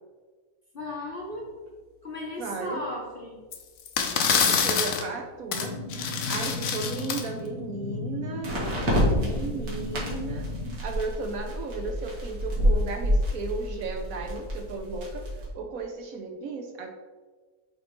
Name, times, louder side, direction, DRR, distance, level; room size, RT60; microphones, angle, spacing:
voice 1, 0.7-1.5 2.0-3.4, left 1 dB, 45° left, -1 dB, 0.8 m, -36 dB
sound 1, 1.7-1.8 8.4-15.5, equal, 90° right, 2.3 m, -28 dB
voice 2, 2.4-2.8 4.3-5.7 6.3-8.6 9.1-10.5 10.8-15.3 15.5-16.9, right 3 dB, 65° right, 4 dB, 1.0 m, -35 dB
sound 2, 3.5-3.6 3.9-5.0 5.5-5.7 5.9-7.2, left 6 dB, 60° left, 1.0 m, -26 dB
sound 3, 5.5-10.7, left 2 dB, 85° left, 1.9 m, -36 dB
8.1 x 3.1 x 4.3 m, 1.3 s
omnidirectional pair, 1.8 m